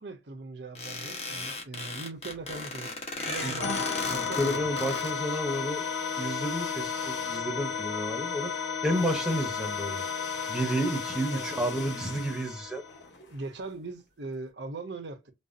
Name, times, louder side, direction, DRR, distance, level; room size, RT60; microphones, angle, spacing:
voice 1, 0.0-2.9 3.3-4.7 11.3-11.5 13.3-15.2, right 3 dB, 75° right, 0.9 m, -40 dB
sound 1, 0.8-5.1, left 3 dB, 35° left, 1.1 m, -36 dB
sound 2, 2.2-2.8 3.1-14.0, left 4 dB, 65° left, 1.5 m, -46 dB
sound 3, 3.6-13.1, left 6 dB, 80° left, 1.2 m, -33 dB
voice 2, 4.1-5.8 6.2-8.5 8.8-10.0 10.5-12.8, equal, 5° right, 0.9 m, -31 dB
5.3 x 2.0 x 2.6 m
head